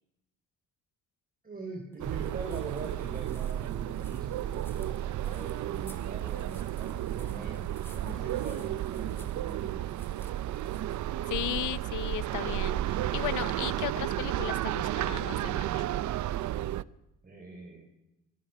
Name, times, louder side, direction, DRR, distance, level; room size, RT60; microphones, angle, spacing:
voice 1, 1.4-9.8 17.2-17.8, right 3 dB, 30° right, 1 dB, 5.5 m, -43 dB
sound 1, 1.9-11.8, left 1 dB, 5° left, 3.7 m, -58 dB
sound 2, 2.0-16.8, right 13 dB, 70° right, 0.8 m, -32 dB
voice 2, 11.3-15.8, left 14 dB, 85° left, 18 dB, 1.0 m, -36 dB
27.5 x 21.0 x 6.4 m, 0.93 s
cardioid pair, 90°, 30 cm